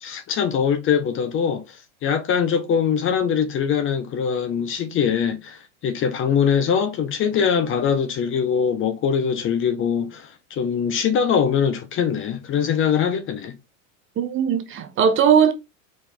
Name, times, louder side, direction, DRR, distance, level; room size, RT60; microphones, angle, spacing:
voice 1, 0.0-1.6 2.0-13.6, left 7 dB, 30° left, 1.2 m, -22 dB
voice 2, 14.2-15.5, right 8 dB, 30° right, 1.1 m, -18 dB
4.9 x 4.5 x 4.5 m
supercardioid pair, 125°, 41 cm